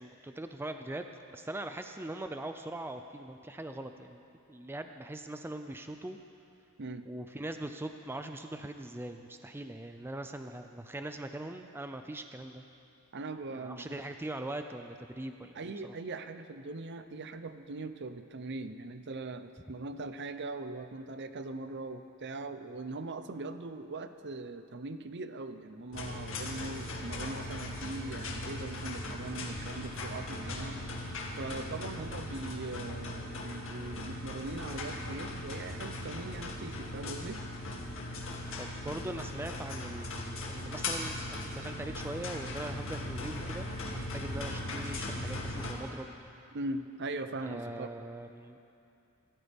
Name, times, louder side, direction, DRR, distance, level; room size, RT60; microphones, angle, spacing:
voice 1, 0.0-6.2 7.1-12.6 13.5-15.9 38.6-43.7 43.9-46.1 47.4-48.6, right 1 dB, 10° right, 6 dB, 0.4 m, -41 dB
voice 2, 13.1-14.0 15.5-30.8 31.4-37.4 46.5-47.9, right 2 dB, 50° right, 10 dB, 0.7 m, -41 dB
sound 1, 25.9-45.7, left 1 dB, 60° left, 2.1 m, -39 dB
26.5 x 13.5 x 3.5 m, 2.7 s
head